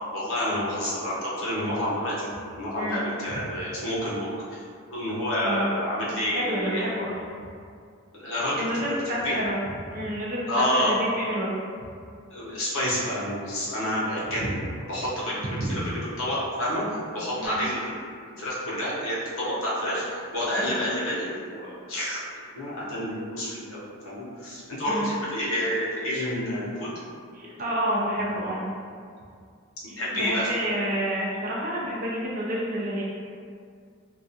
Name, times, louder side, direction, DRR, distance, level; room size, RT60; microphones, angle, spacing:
voice 1, 0.1-2.3 2.6-4.6 4.9-6.9 8.1-9.3 10.5-10.9 12.3-14.6 14.9-17.9 18.4-22.2 22.5-26.9 27.4-27.5 30.0-30.6, equal, 75° left, -8 dB, 0.8 m, -29 dB
voice 2, 6.3-7.1 8.6-9.6 9.9-11.5 15.4-15.8 17.3-17.6 20.5-20.8 24.9-25.1 27.3-28.6 29.9-33.0, equal, 40° right, -4 dB, 0.4 m, -29 dB
2.3 x 2.3 x 2.6 m, 2.2 s
head